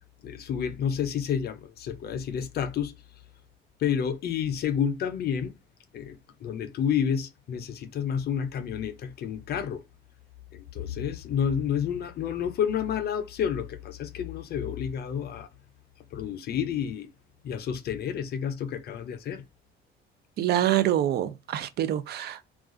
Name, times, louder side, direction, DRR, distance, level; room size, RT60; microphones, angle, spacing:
voice 1, 0.2-2.9 3.8-5.5 5.9-9.8 10.5-15.5 16.1-17.1 17.4-19.4, left 8 dB, 50° left, 0.5 m, -30 dB
voice 2, 20.4-22.4, right 12 dB, 50° right, 0.4 m, -26 dB
2.4 x 2.3 x 3.6 m
cardioid pair, 140°, 21 cm